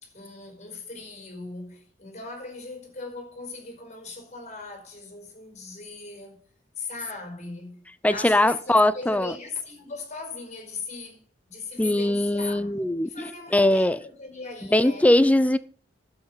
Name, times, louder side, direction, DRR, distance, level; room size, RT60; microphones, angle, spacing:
voice 1, 0.0-6.4 6.8-12.7 13.0-15.1, left 3 dB, 35° left, 5.0 m, -39 dB
voice 2, 8.0-9.4 11.8-13.1 13.5-14.0 14.7-15.6, left 1 dB, 5° left, 0.4 m, -20 dB
12.0 x 8.0 x 5.6 m
head